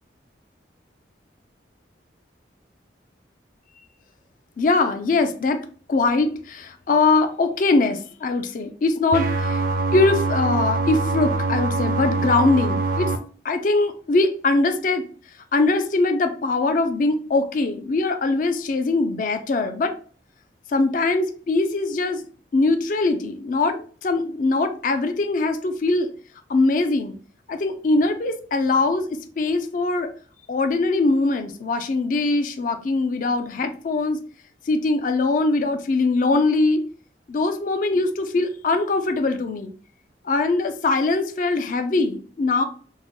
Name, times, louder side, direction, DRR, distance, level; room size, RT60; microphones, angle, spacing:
voice 1, 4.6-5.6 5.9-9.6 9.9-13.1 13.4-15.0 15.5-19.9 20.7-22.2 22.5-26.1 26.5-27.1 27.5-29.1 29.4-30.1 30.5-34.2 34.7-36.8 37.3-39.7 40.2-42.6, left 3 dB, 45° left, 8 dB, 0.3 m, -22 dB
sound 1, 9.1-13.2, right 3 dB, 50° right, 0.4 m, -23 dB
3.7 x 2.1 x 2.9 m, 0.43 s
head